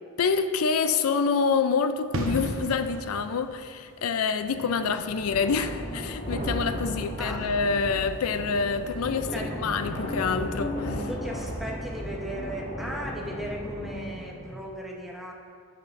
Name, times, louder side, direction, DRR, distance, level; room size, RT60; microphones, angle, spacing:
voice 1, 0.2-11.1, left 5 dB, 90° left, 10 dB, 0.4 m, -27 dB
sound 1, 2.1-8.6 8.9-9.1, right 1 dB, 70° right, 0.8 m, -38 dB
sound 2, 4.4-14.5, equal, 55° left, 1.5 m, -35 dB
sound 3, 6.3-8.4, right 3 dB, 30° right, 0.3 m, -39 dB
voice 2, 7.2-7.5 9.3-9.6 11.1-15.3, equal, ahead, -2 dB, 0.8 m, -37 dB
11.0 x 8.5 x 2.5 m, 2.1 s
head